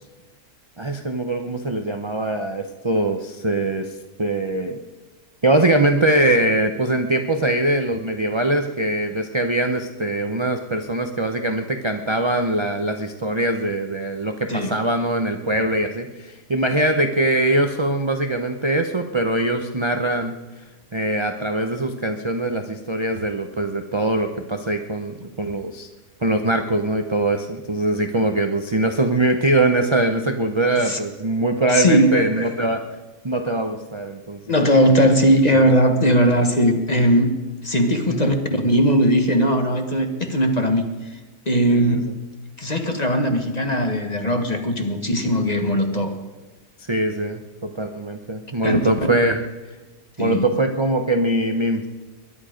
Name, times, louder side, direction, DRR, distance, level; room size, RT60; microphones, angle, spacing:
voice 1, 0.8-3.9 4.2-4.8 5.4-20.3 20.9-25.9 26.2-32.8 33.2-34.5 36.0-36.1 38.1-38.3 41.7-42.0 46.9-49.4 50.2-51.9, right 2 dB, 30° right, 5 dB, 0.5 m, -22 dB
voice 2, 31.7-32.5 34.5-37.3 37.6-40.9 41.5-42.0 42.6-46.2 48.6-48.9 50.2-50.4, equal, 25° left, 6 dB, 1.3 m, -19 dB
21.0 x 11.5 x 5.1 m, 1.2 s
omnidirectional pair, 1.7 m